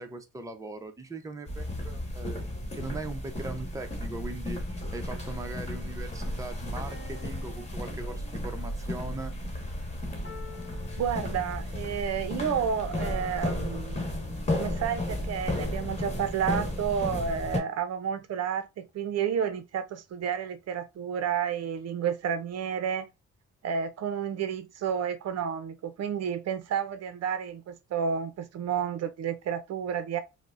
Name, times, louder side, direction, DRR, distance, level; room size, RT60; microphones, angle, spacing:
voice 1, 0.0-2.5 2.7-4.6 4.9-9.3, right 2 dB, 10° right, 0.6 m, -40 dB
sound 1, 1.5-17.6, left 1 dB, 20° left, 1.2 m, -34 dB
sound 2, 6.9-8.7 10.2-11.9 13.0-14.7, left 3 dB, 45° left, 1.0 m, -49 dB
voice 2, 11.0-14.0 14.5-23.1 23.6-30.2, right 7 dB, 60° right, 0.5 m, -31 dB
4.8 x 2.1 x 2.4 m
cardioid pair, 90°, 30 cm